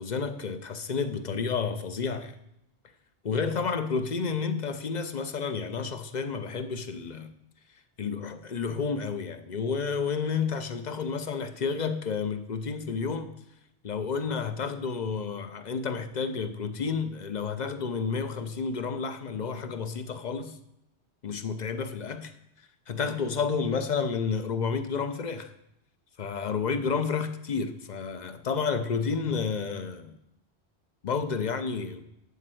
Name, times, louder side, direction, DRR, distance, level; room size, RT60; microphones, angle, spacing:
voice 1, 0.0-2.4 3.2-7.3 8.0-13.3 13.8-20.6 21.2-22.3 22.9-25.5 26.2-30.2 31.0-32.0, left 5 dB, 45° left, 0.7 m, -30 dB
12.0 x 4.3 x 7.8 m
omnidirectional pair, 1.2 m